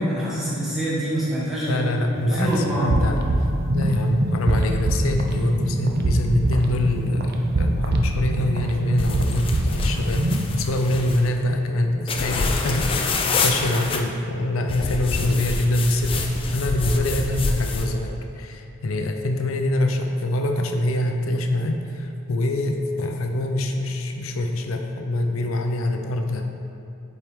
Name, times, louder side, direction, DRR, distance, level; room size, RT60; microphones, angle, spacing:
voice 1, 0.0-1.8 2.2-3.0, equal, ahead, -9 dB, 1.5 m, -25 dB
voice 2, 1.7-3.2 3.7-7.3 7.6-13.1 13.4-16.3 16.5-26.5, left 1 dB, 75° left, 4 dB, 0.6 m, -24 dB
sound 1, 2.1-10.6, right 1 dB, 50° right, 0.5 m, -24 dB
sound 2, 9.0-11.3 12.1-14.0 14.7-17.9, left 3 dB, 25° left, 0.4 m, -26 dB
7.4 x 4.4 x 3.6 m, 2.7 s
head